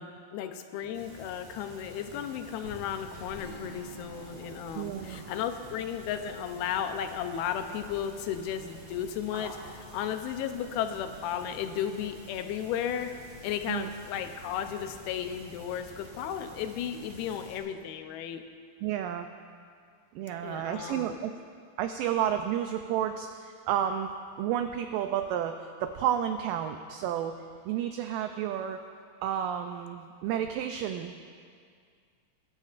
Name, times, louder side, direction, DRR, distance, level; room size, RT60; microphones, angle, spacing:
voice 1, 0.0-13.1 13.4-18.4 20.4-21.2, left 9 dB, 90° left, 7 dB, 2.7 m, -34 dB
sound 1, 0.9-17.6, equal, 35° right, 0.7 m, -49 dB
sound 2, 2.6-18.3, right 1 dB, 55° right, 5.1 m, -55 dB
Strum, 3.3-7.5, right 1 dB, 65° left, 2.1 m, -51 dB
voice 2, 4.8-5.2 13.7-13.9 18.8-19.3 20.2-21.3 21.8-24.1 24.4-27.4 27.7-28.8 29.2-31.2, right 10 dB, 85° right, 7 dB, 2.0 m, -31 dB
22.5 x 12.5 x 2.5 m, 2.2 s
omnidirectional pair, 4.3 m